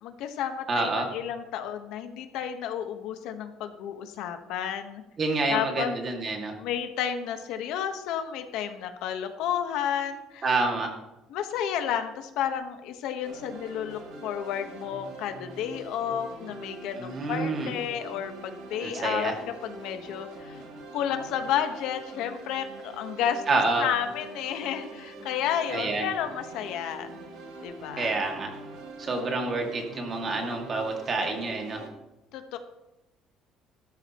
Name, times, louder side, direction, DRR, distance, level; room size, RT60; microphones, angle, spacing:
voice 1, 0.0-5.0 5.5-5.9 6.6-10.4 11.3-20.6 20.9-23.4 23.8-27.1 27.6-28.2 32.3-32.6, left 9 dB, 70° left, 7 dB, 1.3 m, -31 dB
voice 2, 0.7-1.1 5.2-6.5 10.4-10.9 17.0-17.7 18.8-19.4 23.5-23.9 25.7-26.1 28.0-28.5 29.0-31.8, right 3 dB, 30° right, 2 dB, 2.2 m, -28 dB
sound 1, 13.2-31.9, right 2 dB, 85° right, 3.6 m, -44 dB
15.5 x 13.0 x 3.1 m, 0.97 s
cardioid pair, 165°, 0 cm